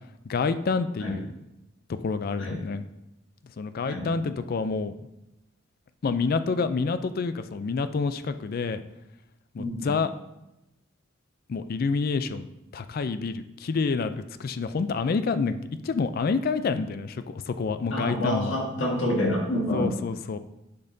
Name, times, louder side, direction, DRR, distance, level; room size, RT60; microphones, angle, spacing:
voice 1, 0.3-1.3 2.0-2.8 3.6-4.9 6.0-8.8 9.5-10.1 11.5-12.5 12.7-15.6 15.8-18.6 19.7-20.4, left 4 dB, 50° left, 11 dB, 0.4 m, -28 dB
voice 2, 9.6-10.0 17.9-20.0, left 1 dB, 65° left, -1 dB, 1.6 m, -28 dB
10.5 x 5.4 x 2.7 m, 0.90 s
head